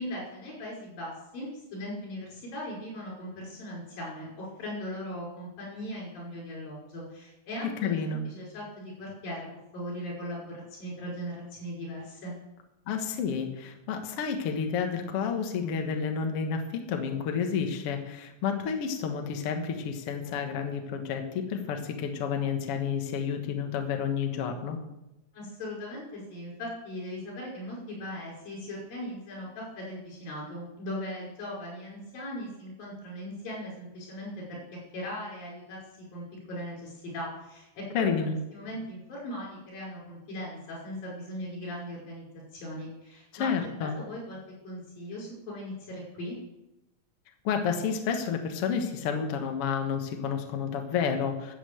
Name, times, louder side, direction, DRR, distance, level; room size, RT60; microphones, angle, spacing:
voice 1, 0.0-9.5 9.7-12.3 25.3-34.6 34.9-38.1 38.5-42.3 42.5-43.5 43.8-44.4 44.6-46.4, left 1 dB, 80° left, -3 dB, 7.3 m, -39 dB
voice 2, 7.8-8.2 12.9-24.8 37.9-38.4 43.4-44.0 47.4-51.5, left 6 dB, 55° left, 4 dB, 1.8 m, -30 dB
13.0 x 7.8 x 7.8 m, 0.91 s
omnidirectional pair, 4.0 m